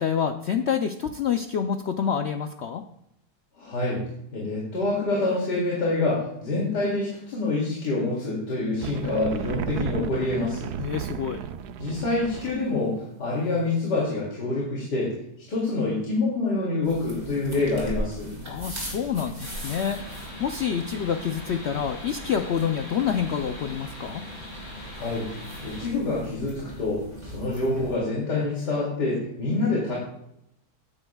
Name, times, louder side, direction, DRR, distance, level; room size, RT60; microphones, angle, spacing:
voice 1, 0.0-2.8 10.8-11.4 18.5-24.2, left 7 dB, 70° left, 6 dB, 0.6 m, -27 dB
voice 2, 3.6-4.0 4.3-10.7 11.8-15.1 15.5-18.3 24.9-25.3 25.6-30.0, left 2 dB, 90° left, -5 dB, 3.1 m, -26 dB
sound 1, 8.8-12.7, right 8 dB, 75° right, 1.1 m, -34 dB
sound 2, 16.8-28.0, equal, 15° right, 3.5 m, -39 dB
sound 3, 19.4-25.9, left 1 dB, 55° left, 4.5 m, -42 dB
15.5 x 9.7 x 2.3 m, 0.78 s
omnidirectional pair, 1.8 m